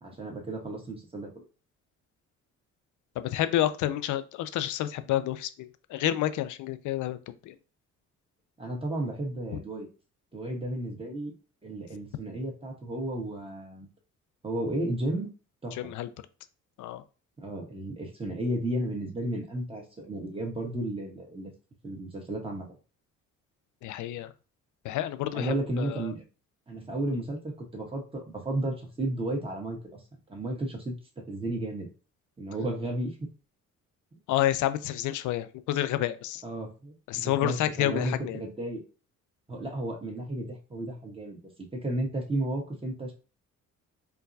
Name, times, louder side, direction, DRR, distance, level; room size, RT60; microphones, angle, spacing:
voice 1, 0.0-1.4 8.6-9.9 10.3-11.3 11.6-13.9 14.4-15.3 15.6-15.9 17.4-21.5 21.8-22.7 25.3-26.2 26.7-30.0 30.3-30.9 31.3-31.9 32.4-33.2 36.4-38.8 39.5-41.4 41.7-43.1, right 1 dB, 20° right, 1.2 m, -33 dB
voice 2, 3.2-7.5 15.8-16.1 16.8-17.0 23.8-24.3 24.8-26.0 34.3-36.4 37.1-38.4, left 13 dB, 75° left, 0.5 m, -29 dB
4.5 x 2.2 x 2.6 m
cardioid pair, 90°, 30 cm